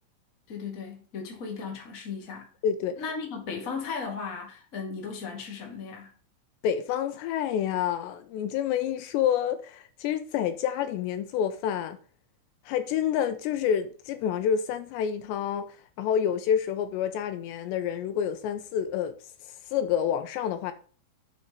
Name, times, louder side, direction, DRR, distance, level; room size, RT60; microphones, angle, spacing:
voice 1, 0.5-2.5 3.0-6.1, left 5 dB, 30° left, 1.6 m, -36 dB
voice 2, 2.6-3.0 6.6-12.0 12.7-19.1 19.7-20.7, left 9 dB, 80° left, 2.8 m, -28 dB
7.4 x 6.5 x 5.3 m
omnidirectional pair, 5.3 m